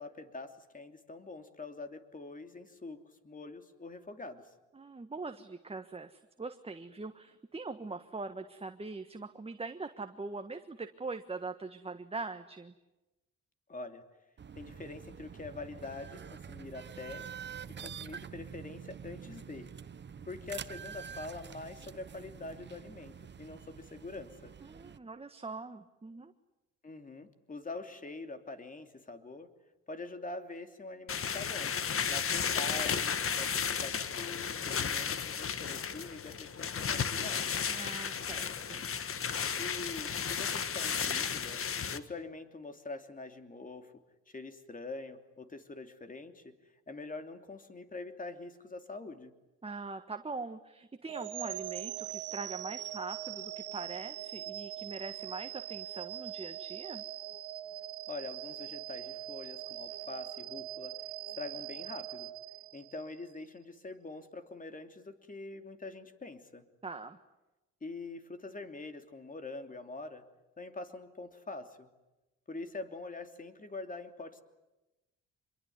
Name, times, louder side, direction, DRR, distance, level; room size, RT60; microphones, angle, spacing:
voice 1, 0.0-4.5 13.7-14.0 14.6-17.3 17.7-19.7 20.3-24.5 26.8-29.5 29.9-31.7 32.1-37.6 39.6-41.6 41.9-46.6 46.9-49.3 58.1-61.0 61.4-62.3 62.7-66.6 67.8-70.2 70.6-71.9 72.5-74.4, left 3 dB, 25° left, 7 dB, 3.0 m, -44 dB
voice 2, 4.7-12.7 24.6-26.3 37.7-38.9 49.6-57.0 66.8-67.2, right 3 dB, 20° right, 7 dB, 1.4 m, -42 dB
sound 1, 14.4-25.0, right 7 dB, 35° right, 1.1 m, -47 dB
sound 2, 31.1-42.0, left 7 dB, 45° left, 1.6 m, -33 dB
sound 3, 51.1-63.2, right 13 dB, 85° right, 1.4 m, -42 dB
26.0 x 23.0 x 9.5 m, 1.0 s
cardioid pair, 90°, 30 cm